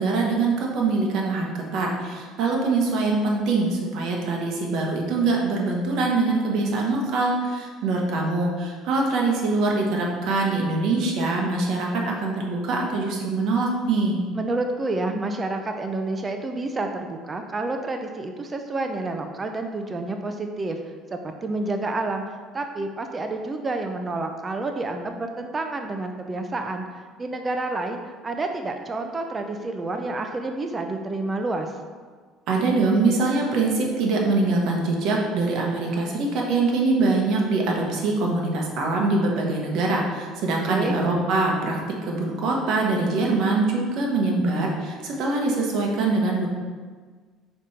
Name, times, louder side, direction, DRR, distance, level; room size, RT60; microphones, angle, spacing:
voice 1, 0.0-14.2 32.5-41.8 42.0-46.5, right 3 dB, 60° right, -1 dB, 1.3 m, -23 dB
voice 2, 14.3-26.9 27.2-31.7 40.7-41.0, right 2 dB, 20° right, 5 dB, 0.5 m, -29 dB
5.2 x 4.3 x 5.0 m, 1.5 s
cardioid pair, 135°, 0 cm